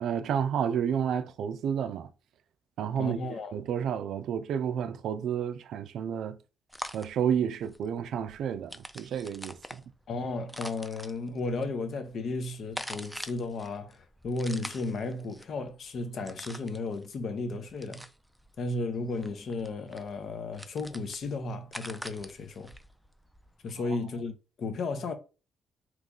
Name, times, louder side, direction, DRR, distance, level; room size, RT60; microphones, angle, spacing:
voice 1, 0.0-2.1 2.8-3.2 3.5-6.4 6.9-9.8, right 8 dB, 75° right, 0.3 m, -30 dB
voice 2, 3.0-3.6 10.1-18.0 18.6-22.7 23.6-24.3 24.6-25.1, left 3 dB, 60° left, 0.7 m, -34 dB
sound 1, 6.7-23.7, equal, ahead, 0.4 m, -45 dB
3.0 x 2.4 x 3.6 m
cardioid pair, 80°, 0 cm